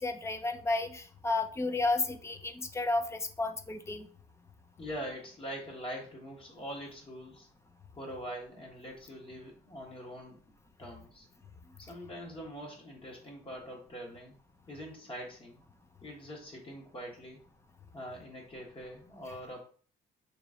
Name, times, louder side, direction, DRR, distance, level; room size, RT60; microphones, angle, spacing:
voice 1, 0.0-4.1, left 2 dB, 15° left, 7 dB, 0.5 m, -32 dB
voice 2, 4.8-7.5 8.0-10.4 10.8-11.3 11.8-14.3 14.7-15.6 16.0-17.4 17.9-19.6, equal, 30° left, -1 dB, 1.3 m, -43 dB
3.1 x 3.0 x 3.7 m, 0.43 s
cardioid pair, 110°, 17 cm